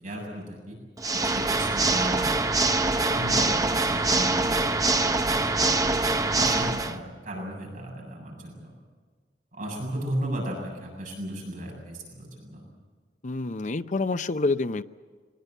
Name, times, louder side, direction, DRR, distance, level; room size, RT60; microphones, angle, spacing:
voice 1, 0.0-0.8 1.1-2.5 3.1-4.7 5.0-8.7 9.5-12.7, right 1 dB, 50° right, -1 dB, 7.6 m, -35 dB
Water / Mechanisms, 1.0-7.0, right 3 dB, 20° right, 0.8 m, -24 dB
voice 2, 13.2-14.8, left 3 dB, 45° left, 12 dB, 0.6 m, -27 dB
23.0 x 20.5 x 8.2 m, 1.5 s
head